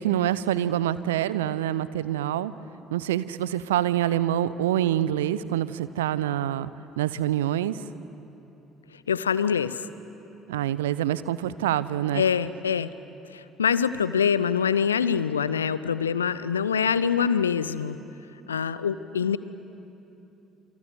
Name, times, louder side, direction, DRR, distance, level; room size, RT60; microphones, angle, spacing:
voice 1, 0.0-2.5 2.9-6.7 7.0-7.8 10.5-12.2, right 12 dB, 70° right, 16 dB, 0.7 m, -26 dB
voice 2, 9.1-9.8 12.1-12.9 13.3-18.0 18.5-19.4, left 7 dB, 80° left, 16 dB, 0.6 m, -24 dB
27.5 x 25.5 x 8.0 m, 2.9 s
figure-of-eight pair, 50°, 0 cm